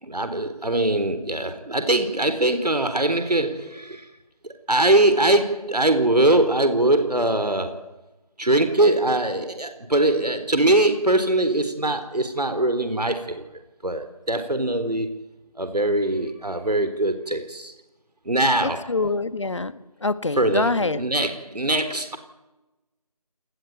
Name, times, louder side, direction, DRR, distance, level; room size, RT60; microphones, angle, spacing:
voice 1, 0.0-4.1 4.7-7.8 8.4-13.4 13.8-15.2 15.6-17.7 18.3-18.9 20.4-22.2, right 1 dB, 90° right, 4.1 m, -22 dB
voice 2, 18.6-21.0, left 3 dB, 50° left, 1.7 m, -25 dB
29.0 x 19.0 x 9.5 m
figure-of-eight pair, 170°, 20 cm